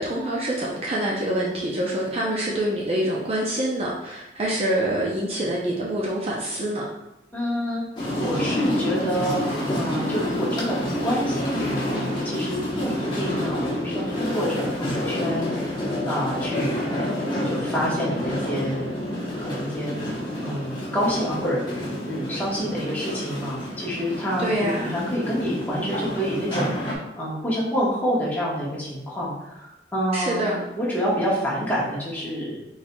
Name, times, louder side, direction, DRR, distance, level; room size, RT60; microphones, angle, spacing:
voice 1, 0.0-6.8 24.4-24.9 30.1-30.6, right 1 dB, 35° right, -4 dB, 0.5 m, -26 dB
voice 2, 7.3-7.8 8.1-9.4 9.7-10.8 11.0-15.7 16.1-16.9 17.4-18.9 19.4-19.9 20.4-21.6 22.0-26.7 27.2-32.6, equal, 10° left, -7 dB, 1.2 m, -27 dB
sound 1, 8.0-26.9, left 1 dB, 25° left, 0.9 m, -28 dB
4.3 x 4.0 x 2.2 m, 0.93 s
head